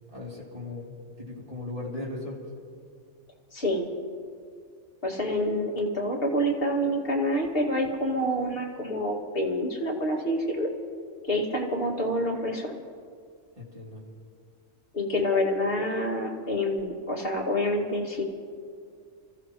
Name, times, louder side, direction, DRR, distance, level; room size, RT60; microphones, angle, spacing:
voice 1, 0.1-2.4 13.5-14.0, left 2 dB, 30° right, -5 dB, 3.2 m, -38 dB
voice 2, 3.5-3.9 5.0-10.7 11.3-12.7 14.9-18.2, equal, 45° left, -2 dB, 2.3 m, -27 dB
26.5 x 15.0 x 3.1 m, 2.2 s
omnidirectional pair, 1.3 m